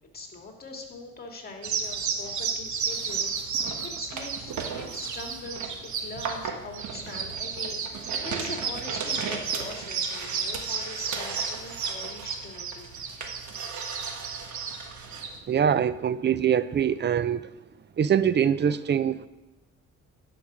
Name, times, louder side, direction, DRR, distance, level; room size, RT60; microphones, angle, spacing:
voice 1, 0.1-3.3 3.8-13.0, left 2 dB, 30° left, 2 dB, 2.2 m, -42 dB
sound 1, 1.6-15.4, right 6 dB, 70° right, 1.4 m, -32 dB
voice 2, 15.5-17.4 18.0-19.3, right 8 dB, 35° right, 15 dB, 0.5 m, -23 dB
10.5 x 5.1 x 6.3 m, 0.99 s
cardioid pair, 90°, 30 cm